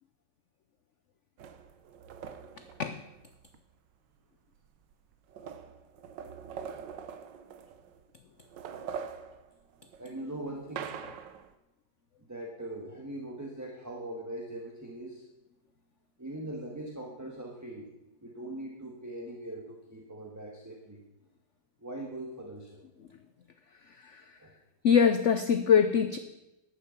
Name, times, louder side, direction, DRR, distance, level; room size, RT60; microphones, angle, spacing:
sound 1, 1.4-3.6 4.6-4.7 4.9-8.0 8.4-11.5, right 7 dB, 75° right, 1.5 m, -43 dB
voice 1, 10.0-10.9 12.3-15.2 16.2-17.9 18.2-21.0 21.8-22.8 24.4-24.5, right 1 dB, 10° right, 0 dB, 1.4 m, -41 dB
voice 2, 24.8-26.2, left 7 dB, 60° left, 9 dB, 0.7 m, -23 dB
11.5 x 8.8 x 7.0 m, 0.97 s
omnidirectional pair, 2.0 m